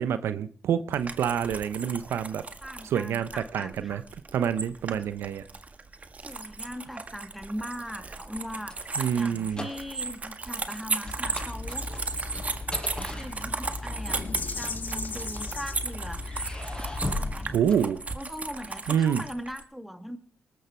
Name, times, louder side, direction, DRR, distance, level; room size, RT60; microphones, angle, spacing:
voice 1, 0.0-2.4 2.8-4.0 4.3-5.4 9.0-9.7 17.5-18.0 18.9-19.2, right 8 dB, 85° right, 13 dB, 0.9 m, -27 dB
sound 1, 0.9-19.6, right 3 dB, 35° right, 1.7 m, -36 dB
voice 2, 2.6-4.0 6.2-8.8 9.1-11.9 12.8-16.2 17.1-17.5 18.1-20.2, equal, ahead, 8 dB, 2.1 m, -40 dB
sound 2, 8.5-10.2 10.4-10.7 11.1-13.9 14.7-15.6 16.2-18.5, left 2 dB, 20° left, 5.7 m, -38 dB
sound 3, 11.0-17.6, left 3 dB, 45° left, 2.3 m, -37 dB
19.5 x 13.0 x 4.5 m, 0.40 s
cardioid pair, 75°, 4 cm